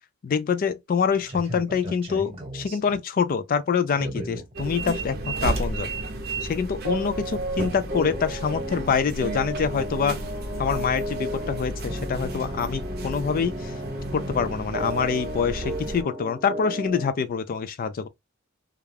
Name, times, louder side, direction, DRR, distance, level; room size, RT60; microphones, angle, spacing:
voice 1, 0.2-5.9 6.4-10.2 10.6-13.7 14.1-18.1, left 6 dB, 45° left, 0.3 m, -26 dB
sound 1, 1.1-3.0 3.9-4.5 5.6-5.8 6.1-6.4 6.8-17.1, equal, 30° right, 1.1 m, -34 dB
sound 2, 4.6-16.0, right 2 dB, 50° right, 0.6 m, -33 dB
2.4 x 2.2 x 3.2 m
head